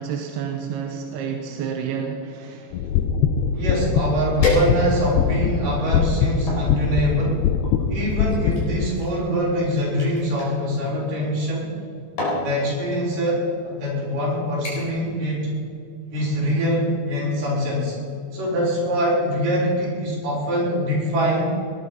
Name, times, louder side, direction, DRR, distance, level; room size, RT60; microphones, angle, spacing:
voice 1, 0.0-2.8, right 7 dB, 75° right, 4 dB, 2.6 m, -30 dB
sound 1, 2.7-8.9, left 7 dB, 80° left, 2.6 m, -22 dB
voice 2, 3.5-7.4 7.9-11.7 12.4-15.5 16.1-18.0 18.3-21.5, equal, 50° right, -5 dB, 6.2 m, -24 dB
sound 2, 4.4-5.2 5.8-6.7 7.6-10.5 11.6-11.8 12.2-12.5 13.4-13.5 13.9-14.2 14.6-15.1 15.4-15.7 16.1-16.2, left 1 dB, 45° left, 5.7 m, -29 dB
19.5 x 10.5 x 5.4 m, 2.3 s
omnidirectional pair, 5.1 m